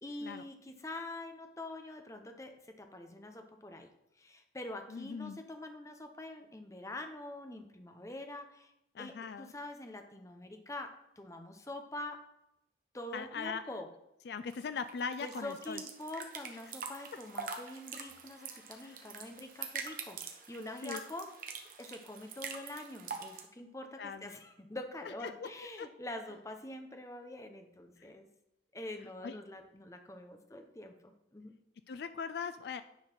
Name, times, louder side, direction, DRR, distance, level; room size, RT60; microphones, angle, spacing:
voice 1, 0.0-3.9 4.2-8.7 9.0-10.9 11.2-12.2 12.9-13.9 15.2-21.3 21.8-28.3 28.7-31.5, left 1 dB, 15° left, 6 dB, 0.8 m, -45 dB
voice 2, 4.9-5.4 8.9-9.5 13.1-13.6 14.3-15.8 18.8-18.9 20.8-21.0 24.0-24.3 25.4-25.5 25.8-25.9 28.0-28.1 29.2-29.3 31.9-32.8, left 5 dB, 65° left, 12 dB, 0.3 m, -40 dB
sound 1, 14.5-23.4, right 5 dB, 50° right, 1.1 m, -44 dB
9.9 x 4.0 x 6.1 m, 0.83 s
head